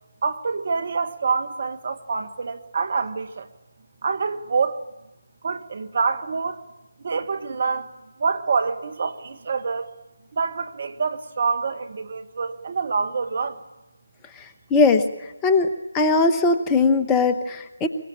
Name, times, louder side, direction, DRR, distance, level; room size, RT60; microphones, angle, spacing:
voice 1, 0.2-3.5 4.0-4.8 5.4-6.6 7.0-7.9 8.2-9.9 10.3-13.6, right 5 dB, 45° right, 1.5 m, -26 dB
voice 2, 14.7-15.1 15.4-15.7 15.9-17.9, left 3 dB, 15° left, 1.0 m, -19 dB
24.0 x 22.5 x 8.7 m
figure-of-eight pair, 155°, 0 cm